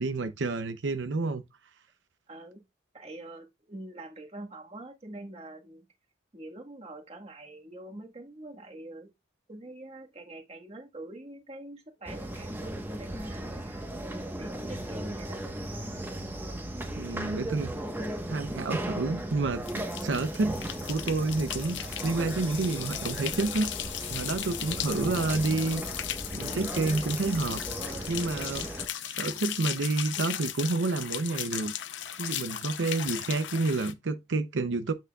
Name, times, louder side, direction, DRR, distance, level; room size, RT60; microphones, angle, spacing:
voice 1, 0.0-1.4 17.0-17.7 18.3-20.5 20.9-25.8 26.3-27.6 28.1-28.7 29.1-31.7 32.2-34.9, right 3 dB, 80° right, 0.6 m, -29 dB
voice 2, 2.3-2.6 2.9-5.8 6.3-9.1 9.5-13.8 14.4-15.4, right 2 dB, 35° right, 1.5 m, -44 dB
sound 1, 12.1-28.9, right 1 dB, 10° right, 1.1 m, -37 dB
sound 2, 19.6-33.9, left 11 dB, 80° left, 0.7 m, -37 dB
8.3 x 6.1 x 2.3 m
head